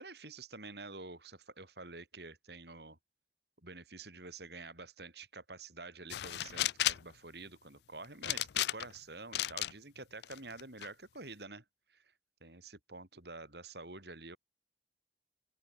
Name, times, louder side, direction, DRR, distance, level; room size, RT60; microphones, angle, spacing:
voice 1, 0.0-3.0 3.6-11.6 11.9-12.0 12.4-14.4, right 3 dB, 70° right, 4.6 m, -48 dB
sound 1, 6.1-7.1 8.2-9.0 9.3-9.7 10.2-10.9, left 13 dB, 70° left, 0.4 m, -33 dB
open air
head